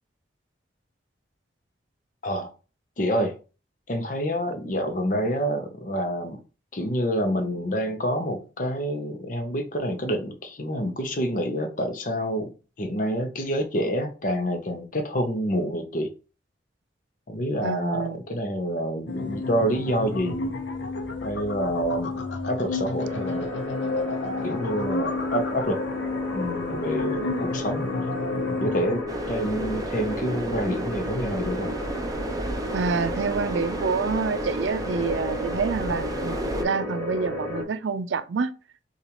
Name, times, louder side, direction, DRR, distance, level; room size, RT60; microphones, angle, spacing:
voice 1, 3.0-3.4 3.9-6.4 6.7-16.1 17.3-20.5 21.2-23.5 24.4-25.8 26.3-27.9 28.6-31.8, equal, 45° left, 0.8 m, -27 dB
voice 2, 17.6-18.2 32.7-38.5, right 5 dB, 85° right, 0.4 m, -27 dB
sound 1, 19.1-29.0, left 3 dB, 85° left, 0.7 m, -30 dB
sound 2, 23.0-37.6, left 1 dB, 20° left, 1.8 m, -33 dB
sound 3, 29.1-36.6, right 2 dB, 20° right, 0.4 m, -33 dB
6.8 x 2.4 x 3.0 m
head